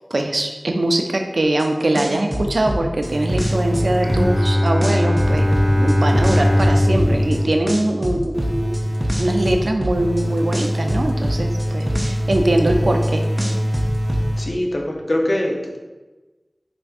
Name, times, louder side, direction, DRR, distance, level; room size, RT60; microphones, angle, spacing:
voice 1, 0.1-5.5 5.7-13.2, right 1 dB, 90° right, 4 dB, 0.3 m, -22 dB
sound 1, 1.6-1.7 1.9-4.5 4.8-7.4 7.7-10.2 10.5-13.1 13.4-14.3, equal, 20° right, 0.4 m, -25 dB
sound 2, 3.0-4.7 5.2-7.7 8.3-14.7, equal, 65° right, 0.7 m, -24 dB
Bowed string instrument, 4.0-9.7, left 1 dB, 25° left, 1.3 m, -20 dB
voice 2, 14.4-15.8, left 1 dB, 60° left, 1 dB, 0.5 m, -23 dB
4.3 x 2.5 x 2.3 m, 1.2 s
wide cardioid pair, 50°, 0 cm